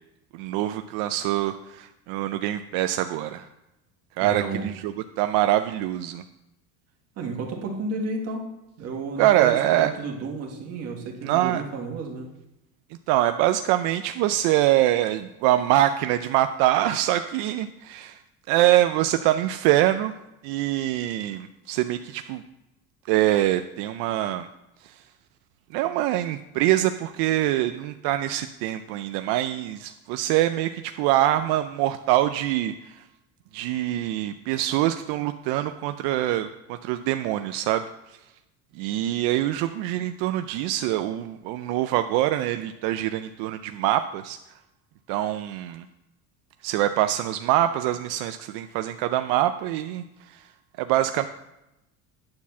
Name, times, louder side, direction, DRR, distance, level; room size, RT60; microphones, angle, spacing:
voice 1, 0.3-3.5 4.2-6.2 9.2-9.9 11.2-11.6 13.1-18.2 18.5-20.1 20.4-22.4 23.1-24.5 24.8-24.9 25.7-33.0 33.5-37.8 38.7-44.4 45.1-45.8 46.6-50.4 50.8-51.3, right 13 dB, 80° right, 8 dB, 0.5 m, -24 dB
voice 2, 4.2-4.7 7.2-8.5 8.8-12.3, right 3 dB, 40° right, 1 dB, 1.7 m, -32 dB
9.6 x 4.3 x 7.1 m, 0.92 s
cardioid pair, 165°, 37 cm